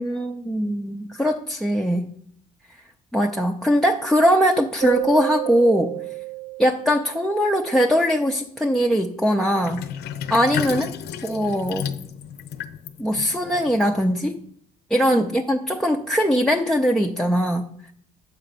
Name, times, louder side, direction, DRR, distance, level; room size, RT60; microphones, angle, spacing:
voice 1, 0.0-2.1 3.1-5.9 6.6-9.8 10.3-10.9 11.2-11.9 13.0-14.4 14.9-17.7, equal, ahead, 3 dB, 0.6 m, -21 dB
Keyboard (musical), 4.8-7.5, right 21 dB, 45° right, 0.7 m, -30 dB
Sink (filling or washing), 9.6-14.4, left 9 dB, 75° left, 0.7 m, -33 dB
8.7 x 3.9 x 6.9 m, 0.65 s
cardioid pair, 110°, 17 cm